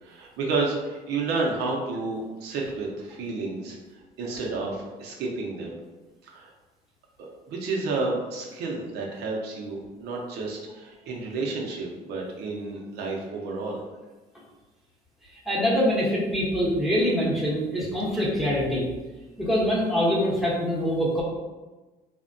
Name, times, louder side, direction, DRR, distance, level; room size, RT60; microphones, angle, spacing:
voice 1, 0.0-5.8 6.2-6.5 7.5-13.8, right 3 dB, 85° right, -1 dB, 0.6 m, -31 dB
voice 2, 15.5-18.9 19.4-21.2, equal, ahead, -5 dB, 0.8 m, -24 dB
3.3 x 2.1 x 2.5 m, 1.2 s
cardioid pair, 110°, 17 cm